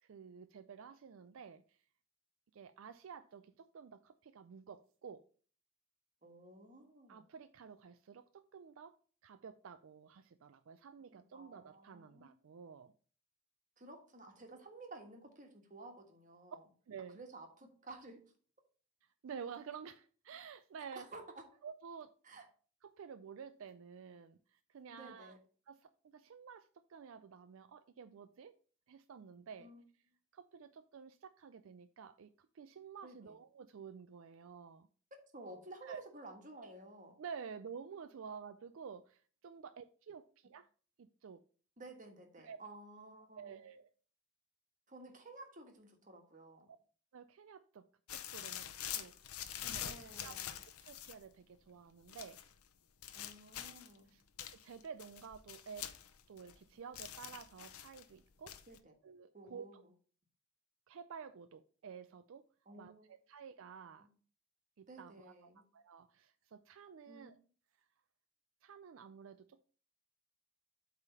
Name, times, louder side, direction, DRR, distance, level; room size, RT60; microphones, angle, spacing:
voice 1, 0.0-1.8 2.5-5.2 7.1-8.9 9.2-12.9 16.9-17.2 19.2-21.1 21.6-22.1 22.8-25.4 25.7-28.6 28.9-29.7 30.3-34.9 35.8-36.0 37.2-40.7 41.0-41.4 42.4-42.6 43.3-43.9 47.1-47.9 48.1-49.9 50.2-50.3 50.9-52.4 54.1-54.2 54.5-55.9 56.3-58.5 59.0-59.8 60.9-62.5 62.8-64.1 64.8-67.4 68.6-69.6, right 6 dB, 70° right, 0.4 m, -51 dB
voice 2, 6.2-7.3 11.1-12.3 13.8-16.6 17.1-18.2 20.9-21.4 22.2-22.4 24.9-25.4 29.6-29.8 33.0-33.4 35.1-37.2 41.8-43.6 44.9-46.7 49.7-50.5 53.1-54.1 58.7-59.0 59.3-59.9 62.6-63.1 64.0-64.1 64.9-65.6 67.0-67.3, right 2 dB, 35° right, 1.5 m, -53 dB
sound 1, 48.1-51.3 52.1-52.5 53.0-54.0 54.4-56.6 56.9-58.0 58.5-58.8, left 10 dB, 85° left, 0.7 m, -45 dB
8.2 x 3.5 x 5.5 m
head